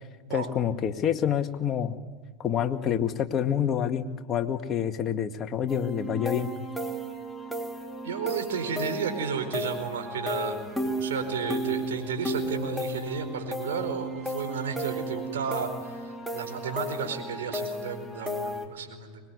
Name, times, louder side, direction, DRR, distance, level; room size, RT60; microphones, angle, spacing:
voice 1, 0.3-2.0 2.4-6.5, left 9 dB, 35° left, 7 dB, 1.9 m, -27 dB
sound 1, 5.7-18.7, equal, ahead, 3.4 m, -34 dB
voice 2, 8.0-19.2, right 6 dB, 75° right, 6 dB, 4.7 m, -33 dB
24.5 x 21.0 x 9.7 m, 1.4 s
hypercardioid pair, 90°, 0 cm